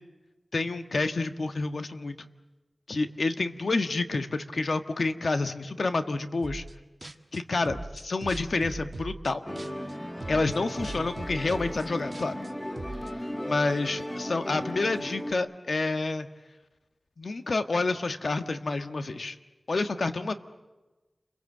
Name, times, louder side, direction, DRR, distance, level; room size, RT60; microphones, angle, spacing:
voice 1, 0.5-2.3 2.9-6.6 7.0-9.4 10.3-12.3 13.5-16.3 17.2-19.4 19.7-20.3, left 3 dB, 70° left, 8 dB, 1.5 m, -29 dB
sound 1, 6.4-6.7 7.0-9.9 10.2-13.1, right 2 dB, 40° right, 1.7 m, -39 dB
Musical instrument, 9.5-15.3, equal, 15° left, 1.9 m, -36 dB
29.5 x 23.0 x 7.9 m, 1.1 s
wide cardioid pair, 65°, 0 cm